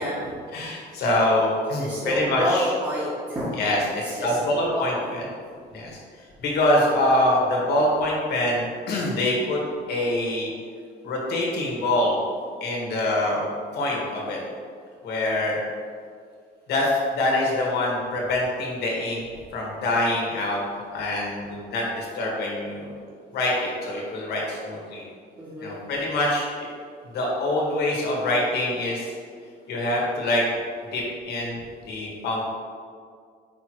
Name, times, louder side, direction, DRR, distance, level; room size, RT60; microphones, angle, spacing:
voice 1, 0.0-0.4 0.9-1.0 1.8-3.5 3.9-4.4 4.7-5.2 25.4-25.7, equal, 25° right, -9 dB, 1.4 m, -29 dB
voice 2, 0.5-2.7 3.5-5.2 5.7-6.0 6.4-9.6 9.9-10.5 11.0-12.2 12.6-13.5 13.7-14.4 15.0-15.6 16.7-19.2 19.5-20.6 20.9-22.9 23.3-25.0 25.6-26.7 27.1-29.2 29.7-30.4 30.9-31.6 31.9-32.4, left 1 dB, 75° left, -2 dB, 1.6 m, -25 dB
5.4 x 4.5 x 4.6 m, 2.1 s
cardioid pair, 110°, 17 cm